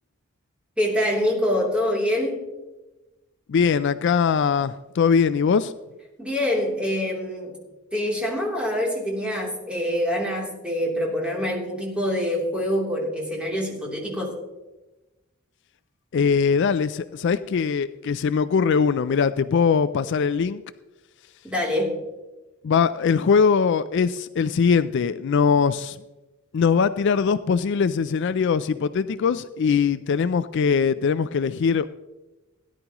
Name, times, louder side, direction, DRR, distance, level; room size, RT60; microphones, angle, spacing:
voice 1, 0.8-2.4 6.2-7.6 7.9-14.4 21.4-22.0, left 1 dB, 5° right, -3 dB, 3.1 m, -25 dB
voice 2, 3.5-5.7 16.1-20.6 22.6-26.0 26.5-31.9, left 6 dB, 60° left, 14 dB, 0.4 m, -21 dB
17.5 x 11.0 x 3.0 m, 1.1 s
head